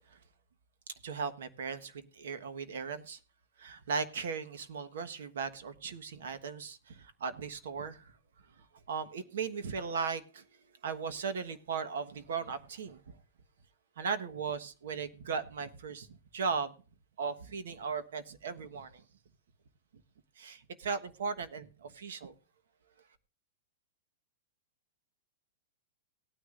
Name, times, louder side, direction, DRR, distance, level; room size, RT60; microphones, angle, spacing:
voice 1, 1.0-3.2 3.6-8.1 8.6-10.4 10.8-13.2 14.0-16.7 17.2-19.0 20.4-22.3, right 5 dB, 75° right, 1.3 m, -37 dB
18.5 x 9.7 x 2.5 m
supercardioid pair, 170°, 0 cm